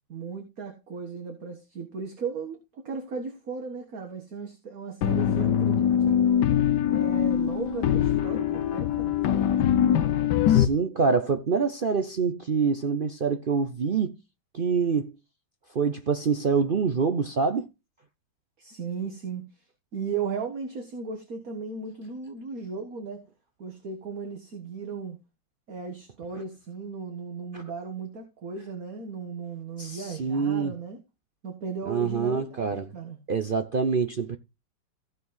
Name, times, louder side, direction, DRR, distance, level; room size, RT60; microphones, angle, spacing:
voice 1, 0.1-6.2 6.9-9.2 18.6-19.4 19.9-23.3 23.6-25.2 25.7-31.0 31.4-33.2, right 5 dB, 50° right, 1.9 m, -36 dB
sound 1, 5.0-10.6, left 9 dB, 65° left, 1.3 m, -23 dB
voice 2, 10.5-14.2 14.5-15.1 15.7-17.7 27.5-27.6 29.8-30.7 31.9-32.9 33.3-34.4, right 5 dB, 75° right, 0.4 m, -26 dB
16.0 x 5.3 x 3.9 m
omnidirectional pair, 2.1 m